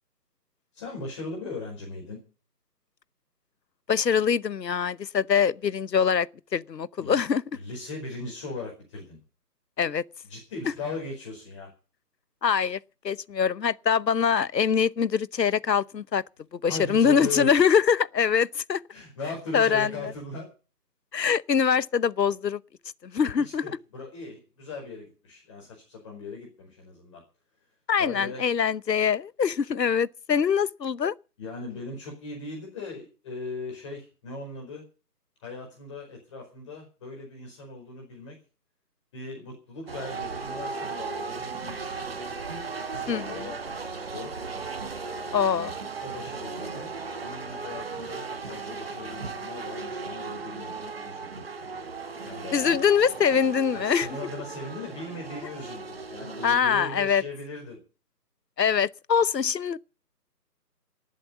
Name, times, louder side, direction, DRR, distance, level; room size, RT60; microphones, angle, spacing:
voice 1, 0.7-2.2 7.0-7.2 7.5-9.2 10.2-11.7 16.7-17.5 18.9-20.5 23.4-27.2 28.0-28.4 31.4-34.8 35.4-38.4 39.1-42.1 42.9-44.3 46.0-46.9 47.2-51.4 52.2-52.8 53.7-57.8, left 3 dB, 20° left, 4.9 m, -39 dB
voice 2, 3.9-7.4 9.8-10.0 12.4-12.8 13.0-16.2 16.6-18.8 19.5-19.9 21.1-22.6 23.0-23.6 27.9-31.1 43.1-43.2 45.3-45.7 52.5-54.1 56.4-57.2 58.6-59.8, left 7 dB, 80° left, 1.0 m, -23 dB
sound 1, 39.9-56.6, right 4 dB, 35° right, 1.4 m, -36 dB
19.0 x 7.9 x 7.1 m
hypercardioid pair, 170°, 49 cm